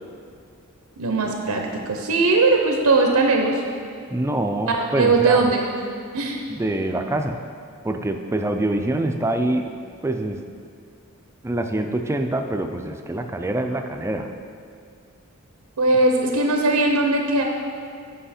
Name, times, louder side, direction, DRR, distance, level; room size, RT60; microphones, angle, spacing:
voice 1, 1.0-3.6 4.7-5.6 6.1-6.4 15.8-17.4, right 3 dB, 90° right, 2 dB, 0.7 m, -19 dB
voice 2, 4.1-5.5 6.5-7.4 7.8-9.7 10.0-10.4 11.4-14.3, right 1 dB, 10° right, 5 dB, 0.3 m, -25 dB
7.8 x 5.1 x 4.3 m, 2.3 s
head